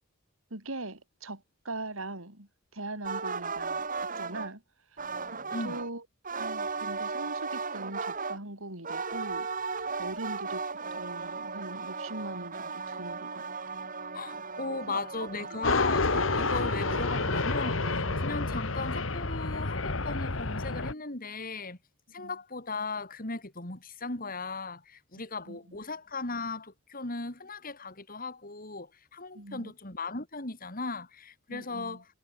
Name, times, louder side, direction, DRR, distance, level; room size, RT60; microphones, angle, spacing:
voice 1, 0.5-3.9 4.1-4.6 4.9-5.0 5.3-5.4 5.6-6.0 6.3-13.4 13.7-13.8 14.7-15.3 22.2-22.3 25.5-25.8 29.3-29.7 31.5-32.0, right 2 dB, 85° right, 5.9 m, -41 dB
sound 1, 3.0-4.5 5.0-5.9 6.2-8.4 8.8-18.6, right 4 dB, 40° right, 7.0 m, -36 dB
voice 2, 14.1-21.8 22.1-32.1, left 3 dB, 45° left, 3.9 m, -37 dB
sound 2, 15.6-20.9, left 3 dB, 70° left, 1.8 m, -29 dB
head